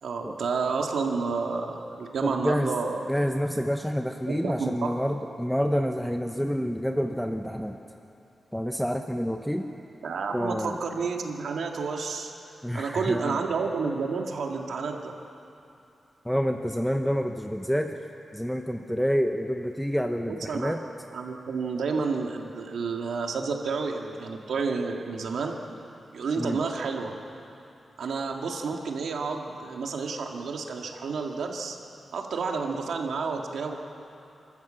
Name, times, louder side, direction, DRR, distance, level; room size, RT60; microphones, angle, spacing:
voice 1, 0.0-3.0 4.3-4.9 10.0-12.3 12.7-15.1 20.3-20.7 21.1-25.6 26.1-27.2 28.0-31.8 32.1-33.8, right 4 dB, 85° right, 2 dB, 2.0 m, -30 dB
voice 2, 2.2-2.7 3.1-7.8 8.5-9.7 10.3-10.8 12.6-13.4 16.2-18.0 18.3-20.8 26.4-26.6, equal, ahead, 5 dB, 0.7 m, -28 dB
28.0 x 13.0 x 7.7 m, 2.8 s
wide cardioid pair, 145°, 0 cm